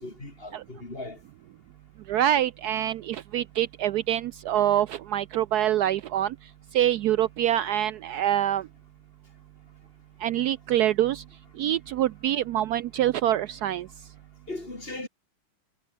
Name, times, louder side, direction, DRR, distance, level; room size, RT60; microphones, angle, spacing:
voice 1, 0.0-1.2 14.5-15.1, left 2 dB, 25° left, 3.7 m, -38 dB
voice 2, 2.1-6.3 6.7-8.7 10.2-11.2 11.6-13.9, right 12 dB, 85° right, 0.8 m, -25 dB
omnidirectional pair, 2.3 m